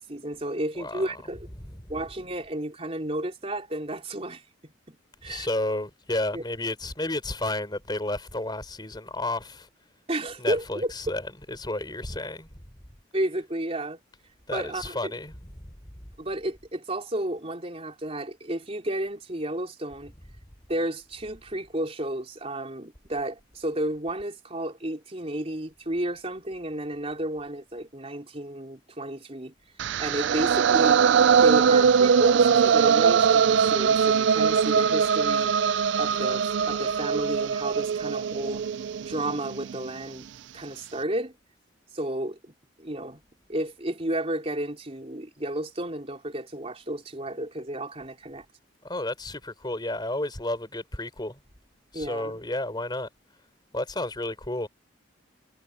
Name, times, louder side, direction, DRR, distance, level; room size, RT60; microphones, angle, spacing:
voice 1, 0.1-1.5 1.9-4.4 4.9-5.0 5.2-5.5 6.3-6.4 10.1-10.9 13.1-14.0 14.5-15.1 16.2-20.1 20.7-29.5 30.0-31.0 31.4-35.5 36.0-38.6 39.0-40.3 40.5-41.3 41.9-43.2 43.5-48.5 51.9-52.4, right 1 dB, 30° right, 3.6 m, -32 dB
voice 2, 0.8-1.1 1.6-1.9 5.2-9.7 10.4-11.2 11.5-12.5 14.5-15.5 48.8-51.4 51.9-53.1 53.7-54.7, left 2 dB, 20° left, 4.0 m, -31 dB
sound 1, 29.8-39.9, right 6 dB, 65° right, 0.4 m, -21 dB
head